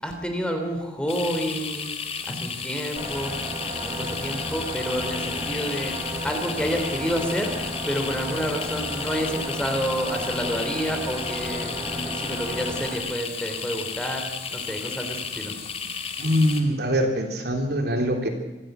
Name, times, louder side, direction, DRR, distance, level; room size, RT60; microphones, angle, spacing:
voice 1, 0.0-1.9 2.2-3.3 3.8-5.9 6.2-7.5 7.9-15.6, equal, 5° left, 4 dB, 3.4 m, -29 dB
sound 1, 1.1-16.6, left 6 dB, 35° left, 2.0 m, -33 dB
sound 2, 3.0-13.0, equal, 20° right, 6.1 m, -33 dB
voice 2, 16.2-18.3, equal, 60° right, 4 dB, 3.2 m, -23 dB
25.5 x 15.5 x 8.1 m, 1.1 s
head